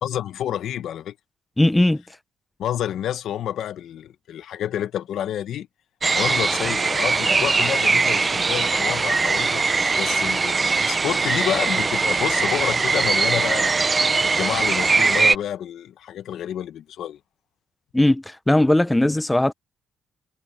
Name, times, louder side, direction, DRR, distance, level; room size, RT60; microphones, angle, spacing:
voice 1, 0.0-1.1 2.6-5.7 6.1-9.6 10.0-17.2, left 10 dB, 75° left, 1.2 m, -29 dB
voice 2, 1.6-2.0 17.9-19.5, left 1 dB, 10° left, 0.8 m, -18 dB
sound 1, 6.0-15.4, right 4 dB, 30° right, 0.6 m, -21 dB
cardioid pair, 90°, 0 cm